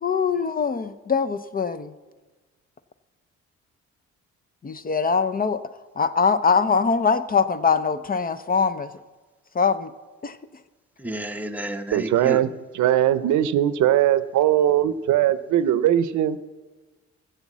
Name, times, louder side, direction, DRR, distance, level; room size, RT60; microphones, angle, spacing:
voice 1, 0.0-1.9 4.6-5.6 6.0-8.9 9.5-9.9 10.2-10.4, left 5 dB, 30° left, 13 dB, 0.5 m, -22 dB
voice 2, 11.0-12.4, right 1 dB, 5° right, 5 dB, 0.8 m, -31 dB
voice 3, 11.9-16.4, right 11 dB, 75° right, 15 dB, 0.6 m, -20 dB
14.5 x 8.1 x 7.3 m, 1.3 s
cardioid pair, 90°, 30 cm